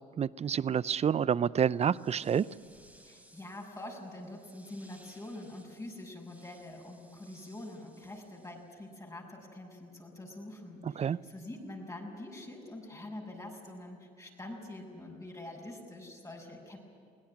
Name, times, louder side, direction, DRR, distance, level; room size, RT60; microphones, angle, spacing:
voice 1, 0.2-2.5 10.8-11.2, right 8 dB, 35° right, 20 dB, 0.5 m, -28 dB
sound 1, 1.7-8.9, right 1 dB, 5° right, 5.1 m, -61 dB
voice 2, 3.0-16.8, left 1 dB, 20° left, 0 dB, 6.4 m, -45 dB
22.5 x 17.5 x 10.0 m, 2.3 s
supercardioid pair, 75°, 18 cm